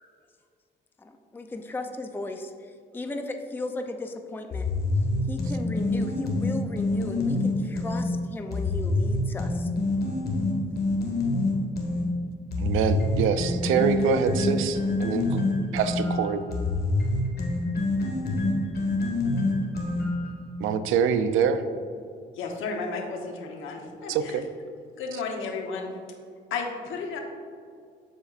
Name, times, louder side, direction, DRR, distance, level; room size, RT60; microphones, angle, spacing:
voice 1, 1.0-4.7 5.3-9.7, left 2 dB, 10° left, 5 dB, 0.4 m, -36 dB
sound 1, 4.5-8.0 8.5-12.0 12.5-20.3, left 2 dB, 55° left, 1.6 m, -26 dB
voice 2, 12.6-15.4 15.7-16.4 20.6-21.6 24.1-24.5, right 6 dB, 85° right, 10 dB, 0.5 m, -25 dB
voice 3, 22.4-24.4 25.0-25.9 26.5-27.2, left 4 dB, 85° left, 2 dB, 0.9 m, -33 dB
12.5 x 4.3 x 2.4 m, 2.3 s
cardioid pair, 90°, 20 cm